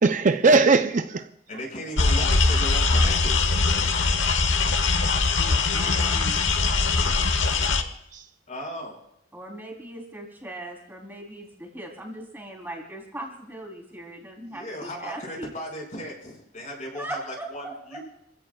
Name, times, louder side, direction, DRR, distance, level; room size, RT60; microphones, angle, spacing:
voice 1, 0.0-1.3 3.9-4.2 7.0-7.3 7.7-8.2, right 3 dB, 45° right, 0.5 m, -22 dB
voice 2, 1.5-3.3 8.5-9.0 14.5-18.0, equal, 40° left, 5.7 m, -36 dB
sound 1, 2.0-7.8, left 3 dB, 80° left, 1.1 m, -22 dB
voice 3, 5.4-6.5 9.3-15.5 16.9-18.0, right 1 dB, 10° right, 3.4 m, -39 dB
27.0 x 16.0 x 2.3 m
head